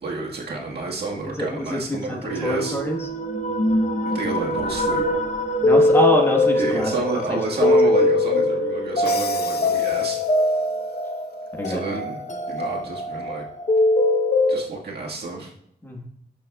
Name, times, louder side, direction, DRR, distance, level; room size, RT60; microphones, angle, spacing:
voice 1, 0.0-2.8 4.1-5.0 6.6-10.2 11.6-12.2 12.5-13.5 14.5-15.5, right 3 dB, 90° right, -2 dB, 1.6 m, -30 dB
voice 2, 1.3-3.0 5.6-6.9 7.3-7.7 11.6-12.0 15.8-16.0, equal, 15° left, 0 dB, 1.3 m, -25 dB
sound 1, 2.3-14.6, left 1 dB, 50° left, 0.8 m, -22 dB
Crash cymbal, 9.1-10.7, left 7 dB, 85° left, 0.5 m, -36 dB
12.5 x 6.2 x 2.3 m, 0.72 s
wide cardioid pair, 155°, 16 cm